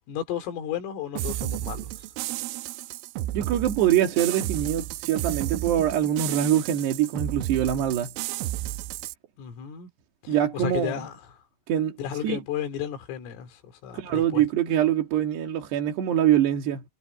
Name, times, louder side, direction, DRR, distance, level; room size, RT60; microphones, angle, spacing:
voice 1, 0.1-2.1 9.4-9.9 10.2-11.2 12.0-14.5, left 9 dB, 85° left, 5.7 m, -33 dB
sound 1, 1.2-9.2, right 15 dB, 80° right, 3.3 m, -32 dB
voice 2, 3.3-8.1 10.3-11.1 11.7-12.0 12.2-12.4 13.9-16.8, right 11 dB, 60° right, 4.1 m, -24 dB
omnidirectional pair, 5.7 m